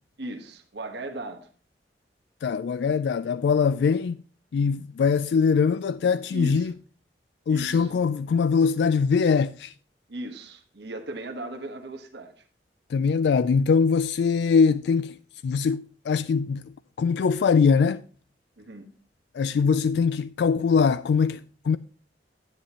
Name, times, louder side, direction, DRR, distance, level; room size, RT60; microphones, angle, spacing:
voice 1, 0.2-1.5 6.3-6.7 7.5-7.9 10.1-12.3 18.6-18.9, right 1 dB, 70° right, 1.3 m, -37 dB
voice 2, 2.4-4.2 4.5-6.7 7.5-9.7 12.9-15.2 15.4-16.7 17.0-18.0 19.3-21.8, left 5 dB, 70° left, 0.3 m, -22 dB
10.0 x 9.8 x 3.0 m
head